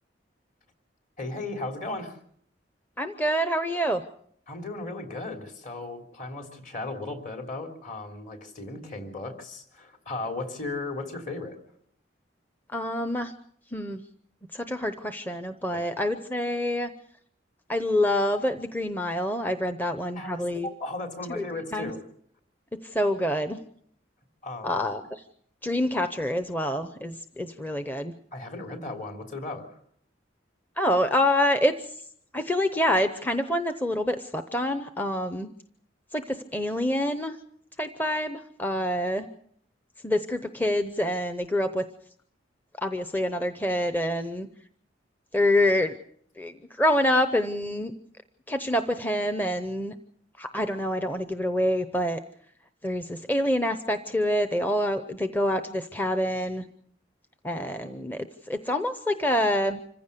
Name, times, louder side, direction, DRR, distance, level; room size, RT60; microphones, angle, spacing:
voice 1, 1.2-2.2 4.5-11.6 15.7-15.9 20.1-22.0 24.4-24.8 28.3-29.8, left 2 dB, 40° left, 4 dB, 3.2 m, -36 dB
voice 2, 3.0-4.0 12.7-13.3 13.7-14.0 14.5-16.9 17.7-20.7 21.3-21.4 21.7-21.9 22.8-23.6 24.6-25.2 25.6-28.1 30.8-32.0 32.3-35.5 36.1-37.4 37.8-39.3 40.0-41.8 42.8-44.5 45.3-46.0 46.4-47.9 48.5-49.9 50.4-52.2 52.8-56.7 57.4-59.8, left 1 dB, 10° left, 8 dB, 0.7 m, -26 dB
26.0 x 15.5 x 6.8 m, 0.65 s
head